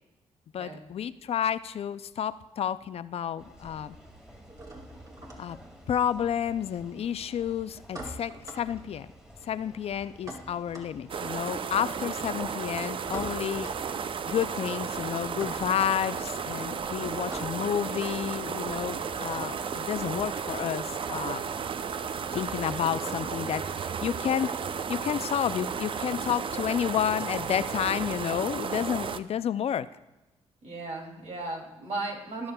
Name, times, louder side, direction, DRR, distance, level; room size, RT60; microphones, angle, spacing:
voice 1, 0.5-3.9 5.4-5.6 5.9-9.1 9.4-13.7 14.3-21.4 22.3-24.5 24.9-29.9, left 9 dB, 60° left, 15 dB, 0.4 m, -30 dB
sound 1, 0.8-2.3 2.6-3.3 3.5-20.5, right 1 dB, 30° right, 2.0 m, -47 dB
sound 2, 3.4-23.0, right 1 dB, 5° right, 1.8 m, -52 dB
sound 3, 11.1-29.2, right 6 dB, 45° right, 0.4 m, -33 dB
voice 2, 30.6-32.5, right 2 dB, 70° right, 0 dB, 2.6 m, -36 dB
21.0 x 7.1 x 2.2 m, 1.0 s
cardioid pair, 80°, 12 cm